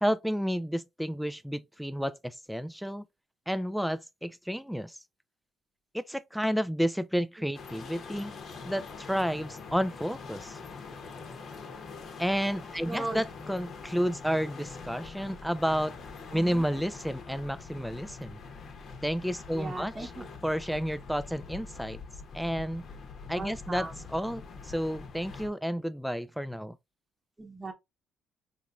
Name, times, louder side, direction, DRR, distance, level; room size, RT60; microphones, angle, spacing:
voice 1, 0.0-3.0 3.5-5.0 5.9-8.3 8.6-10.6 12.2-16.0 16.3-18.4 19.0-20.1 20.4-22.0 22.3-22.8 23.3-26.8, equal, ahead, 0.3 m, -31 dB
sound 1, 7.5-25.5, left 4 dB, 55° left, 0.8 m, -44 dB
voice 2, 12.9-13.3 16.3-16.7 19.5-20.3 23.3-24.0 27.4-27.7, right 2 dB, 20° right, 0.9 m, -38 dB
3.9 x 3.0 x 2.3 m
cardioid pair, 90°, 0 cm